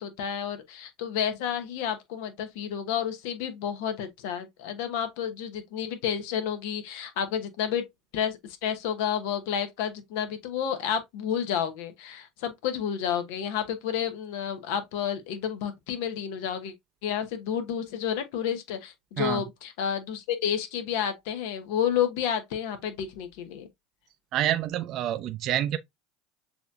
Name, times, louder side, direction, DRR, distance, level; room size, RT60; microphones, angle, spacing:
voice 1, 0.0-7.9 8.1-16.7 17.0-23.7, left 8 dB, 70° left, 1.0 m, -30 dB
voice 2, 24.3-25.8, right 12 dB, 50° right, 0.5 m, -27 dB
6.9 x 3.0 x 2.4 m
hypercardioid pair, 80°, 0 cm